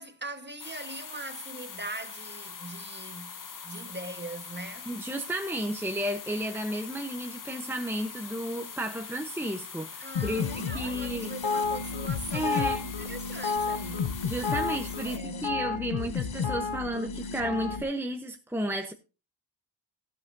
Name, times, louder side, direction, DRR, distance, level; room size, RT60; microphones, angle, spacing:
voice 1, 0.0-3.4 3.6-4.9 10.0-14.2 14.7-15.5, right 1 dB, 25° right, 1.4 m, -41 dB
sound 1, 0.6-15.2, left 6 dB, 45° left, 0.9 m, -43 dB
voice 2, 4.9-10.5 10.7-11.3 12.3-12.8 14.2-18.9, right 1 dB, 5° right, 0.9 m, -33 dB
sound 2, 10.1-17.8, left 5 dB, 85° left, 0.9 m, -31 dB
13.0 x 12.0 x 2.7 m
wide cardioid pair, 65°, 45 cm